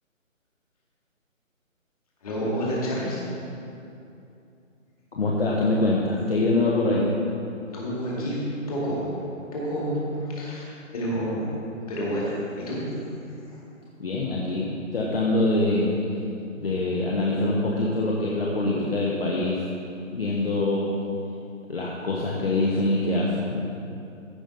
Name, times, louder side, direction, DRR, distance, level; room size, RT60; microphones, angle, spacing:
voice 1, 2.2-3.2 7.7-8.4 8.7-9.1 9.5-10.7 10.9-11.5 11.9-12.8 13.4-13.6, equal, 30° left, -6 dB, 2.0 m, -29 dB
voice 2, 5.1-7.2 14.0-16.0 16.6-19.6 20.1-21.0 21.7-23.6, left 2 dB, 45° left, -3 dB, 1.1 m, -24 dB
14.5 x 5.4 x 4.0 m, 2.6 s
hypercardioid pair, 165°, 40 cm